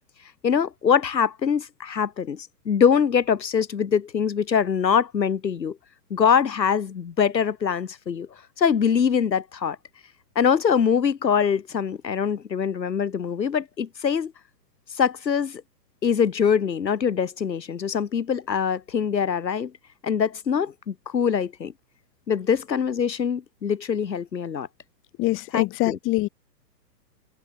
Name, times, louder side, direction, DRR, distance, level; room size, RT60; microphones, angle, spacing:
voice 1, 0.4-5.8 6.1-8.3 8.6-9.8 10.4-14.3 15.0-15.6 16.0-19.7 20.0-21.7 22.3-24.7 25.5-26.0, left 7 dB, 80° left, 6.1 m, -23 dB
voice 2, 25.2-26.3, left 20 dB, 25° left, 2.5 m, -24 dB
hypercardioid pair, 140°, 50 cm